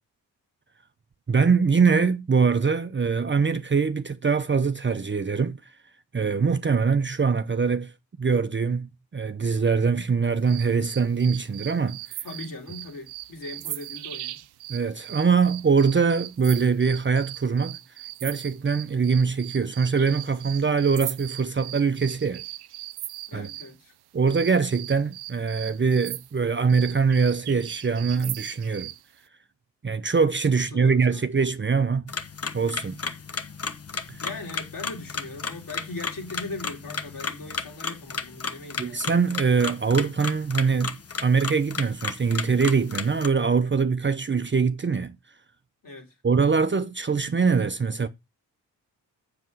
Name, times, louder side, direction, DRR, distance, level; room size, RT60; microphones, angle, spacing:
voice 1, 1.3-5.6 6.1-7.9 8.2-12.0 14.7-17.8 18.2-22.4 23.3-23.5 24.1-28.9 29.8-32.0 32.5-33.0 34.1-34.2 38.8-45.1 46.2-48.1, right 5 dB, 25° right, 0.8 m, -23 dB
sound 1, 10.5-23.7 24.3-29.0, right 15 dB, 65° right, 0.7 m, -39 dB
voice 2, 12.2-14.4 23.3-23.9 30.7-31.2 34.2-39.1 45.8-46.1, left 2 dB, 50° left, 3.4 m, -39 dB
sound 2, 32.1-43.3, left 5 dB, 35° left, 1.3 m, -34 dB
7.4 x 6.9 x 4.8 m
hypercardioid pair, 45°, 42 cm